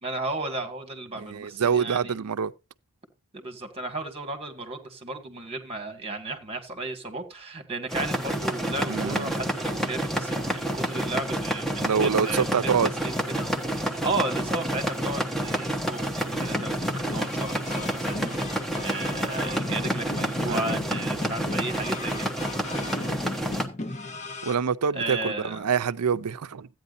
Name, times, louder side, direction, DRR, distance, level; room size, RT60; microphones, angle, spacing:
voice 1, 0.0-2.2 3.3-12.7 13.0-22.3 24.9-25.7, right 2 dB, 25° right, 2.0 m, -34 dB
voice 2, 1.2-2.5 8.9-9.3 11.8-12.9 16.3-16.4 20.5-20.7 24.4-26.7, right 6 dB, 90° right, 0.5 m, -26 dB
sound 1, 7.9-23.7, equal, ahead, 1.0 m, -29 dB
sound 2, 16.4-24.6, left 2 dB, 30° left, 1.0 m, -36 dB
14.5 x 9.1 x 2.6 m
head